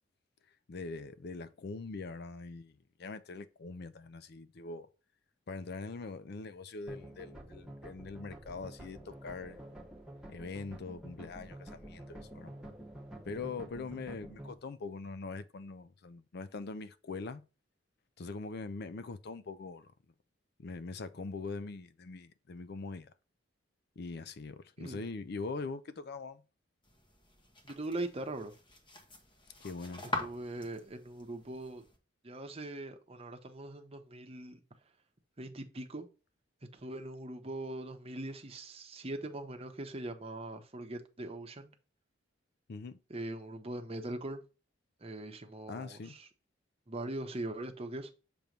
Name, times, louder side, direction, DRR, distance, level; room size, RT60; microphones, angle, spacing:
voice 1, 0.7-2.7 3.0-4.9 5.5-9.8 10.3-12.5 13.2-17.4 18.2-19.9 20.6-23.1 24.0-26.4 29.6-30.1 42.7-43.0 45.7-46.2, left 3 dB, 60° left, 0.5 m, -42 dB
sound 1, 6.9-14.6, right 1 dB, 5° right, 1.2 m, -49 dB
sound 2, 26.8-32.0, left 2 dB, 25° left, 1.2 m, -44 dB
voice 2, 27.6-28.5 30.2-31.8 32.2-34.6 35.4-36.1 36.7-41.7 43.1-44.4 45.0-46.3 46.9-48.1, right 1 dB, 30° right, 0.9 m, -41 dB
6.8 x 3.1 x 5.1 m
head